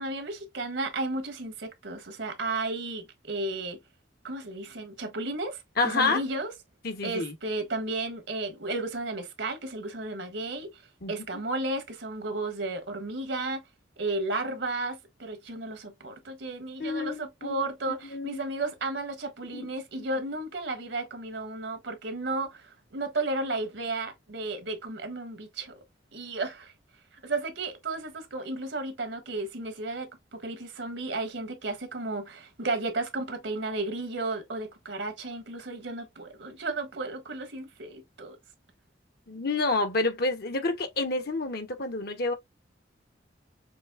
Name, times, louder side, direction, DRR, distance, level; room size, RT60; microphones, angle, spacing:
voice 1, 0.0-3.8 4.2-6.5 7.0-10.7 11.1-13.6 14.0-25.8 26.1-26.7 27.2-38.4, right 2 dB, 75° right, 1.4 m, -33 dB
voice 2, 5.8-6.2 6.8-7.3 11.0-11.4 16.8-17.6 18.1-18.4 19.5-19.7 20.0-20.1 39.3-42.3, left 3 dB, 60° left, 1.1 m, -29 dB
6.1 x 3.3 x 2.2 m
head